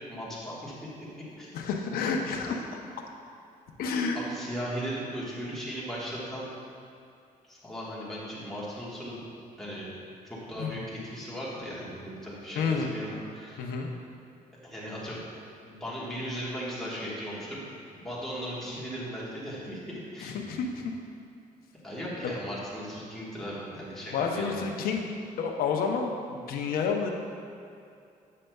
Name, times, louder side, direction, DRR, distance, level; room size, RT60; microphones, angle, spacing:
voice 1, 0.1-0.7 1.4-1.5 4.1-6.5 7.4-9.2 9.6-9.9 10.2-13.7 14.6-15.2 15.6-17.6 17.9-20.4 21.8-24.6, equal, ahead, -8 dB, 1.3 m, -37 dB
voice 2, 1.5-2.8 3.8-4.2 10.6-10.8 12.5-13.0 13.6-13.9 20.2-20.9 22.2-22.3 24.1-27.1, left 5 dB, 80° left, 2 dB, 0.6 m, -30 dB
7.5 x 6.4 x 2.2 m, 2.6 s
cardioid pair, 145°, 15 cm